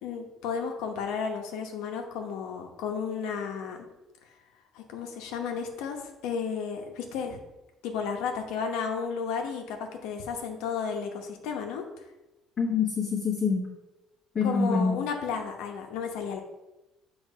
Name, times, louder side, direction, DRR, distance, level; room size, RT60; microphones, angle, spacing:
voice 1, 0.0-3.9 4.7-7.4 7.8-11.8 14.4-16.4, left 6 dB, 80° left, 3 dB, 1.0 m, -33 dB
voice 2, 12.6-13.6 14.3-15.0, left 5 dB, 30° left, -6 dB, 1.2 m, -25 dB
7.2 x 3.3 x 5.0 m, 1.0 s
cardioid pair, 155°, 0 cm